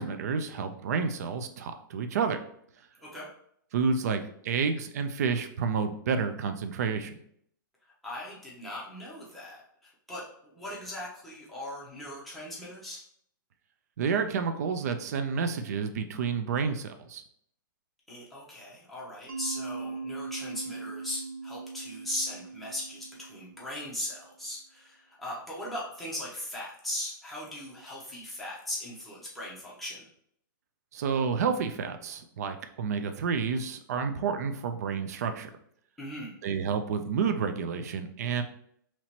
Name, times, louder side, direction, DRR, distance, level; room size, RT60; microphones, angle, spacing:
voice 1, 0.0-2.4 3.7-7.2 14.0-17.2 30.9-35.5 36.4-38.4, right 5 dB, 50° right, 8 dB, 0.4 m, -30 dB
voice 2, 8.0-13.0 18.1-30.1 36.0-36.3, left 1 dB, ahead, -7 dB, 0.7 m, -39 dB
Mallet percussion, 19.3-24.1, right 4 dB, 80° right, 0.8 m, -40 dB
2.9 x 2.8 x 4.2 m, 0.67 s
hypercardioid pair, 170°, 11 cm